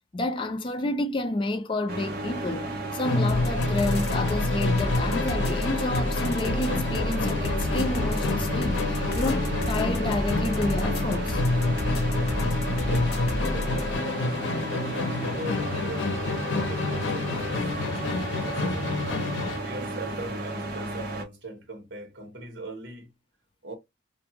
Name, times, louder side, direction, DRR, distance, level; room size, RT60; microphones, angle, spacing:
voice 1, 0.1-11.4, left 2 dB, 25° left, 0.4 m, -30 dB
sound 1, 1.9-21.2, right 2 dB, 50° right, 0.8 m, -34 dB
Musical instrument, 3.0-19.7, left 3 dB, 85° left, 0.6 m, -28 dB
sound 2, 3.3-14.0, left 1 dB, 55° left, 0.9 m, -31 dB
voice 2, 12.0-13.1 13.4-18.0 18.4-19.2 19.6-23.1 23.6-23.7, right 2 dB, 80° right, 1.2 m, -41 dB
2.5 x 2.3 x 2.8 m
head